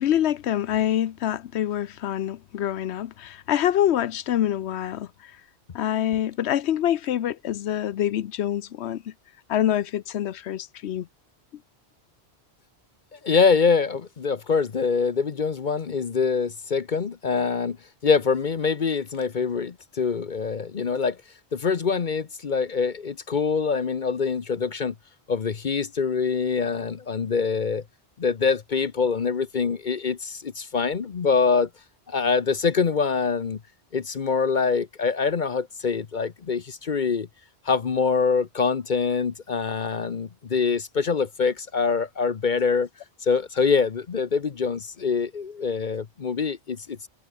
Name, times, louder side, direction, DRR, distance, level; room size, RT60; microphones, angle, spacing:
voice 1, 0.0-5.1 5.7-9.1 9.5-11.1, left 11 dB, 80° left, 1.0 m, -25 dB
voice 2, 13.2-17.8 18.0-21.2 21.5-24.9 25.3-27.8 28.2-31.7 32.1-33.6 33.9-37.3 37.7-42.9 43.2-47.1, left 5 dB, 50° left, 1.0 m, -24 dB
omnidirectional pair, 1.1 m